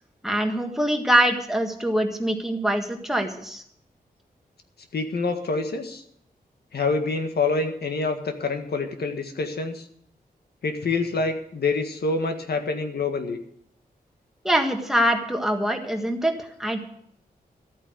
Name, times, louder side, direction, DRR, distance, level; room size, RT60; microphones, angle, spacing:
voice 1, 0.2-3.6 14.4-16.8, equal, ahead, 3 dB, 1.6 m, -24 dB
voice 2, 4.9-6.0 6.7-9.9 10.6-13.4, left 3 dB, 85° left, 6 dB, 1.7 m, -26 dB
13.5 x 9.0 x 6.4 m, 0.68 s
wide cardioid pair, 175°, 16 cm